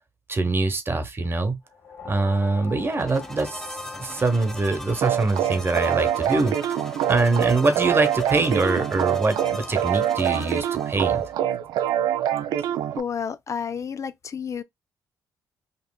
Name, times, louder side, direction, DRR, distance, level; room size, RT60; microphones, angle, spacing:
voice 1, 0.3-1.6 2.0-6.7 7.1-11.3, right 3 dB, 35° right, 1.0 m, -24 dB
sound 1, 1.7-6.2, left 5 dB, 75° left, 1.6 m, -43 dB
sound 2, 2.8-11.3, left 1 dB, 10° left, 0.9 m, -40 dB
sound 3, 5.0-13.0, right 10 dB, 90° right, 0.4 m, -25 dB
voice 2, 12.9-14.6, left 7 dB, 45° left, 0.4 m, -30 dB
5.3 x 2.5 x 2.2 m
cardioid pair, 70°, 7 cm